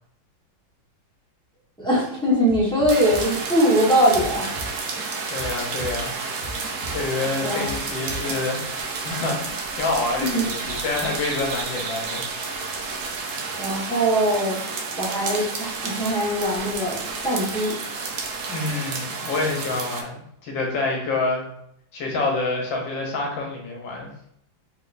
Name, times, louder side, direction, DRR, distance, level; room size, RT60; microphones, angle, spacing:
voice 1, 1.8-4.4 7.4-7.7 10.3-10.5 13.6-14.6 15.0-15.4 15.8-17.0 17.2-17.7, right 1 dB, 5° left, -7 dB, 0.9 m, -21 dB
sound 1, 2.5-5.1 5.4-8.4 8.7-8.9, equal, 20° left, 1.7 m, -38 dB
sound 2, 2.9-20.0, right 4 dB, 80° right, 0.7 m, -31 dB
voice 2, 5.3-6.2 6.6-8.6 8.9-12.3 18.5-21.4 21.9-24.1, left 3 dB, 70° left, 0 dB, 1.7 m, -27 dB
4.1 x 3.8 x 2.6 m, 0.72 s
omnidirectional pair, 2.2 m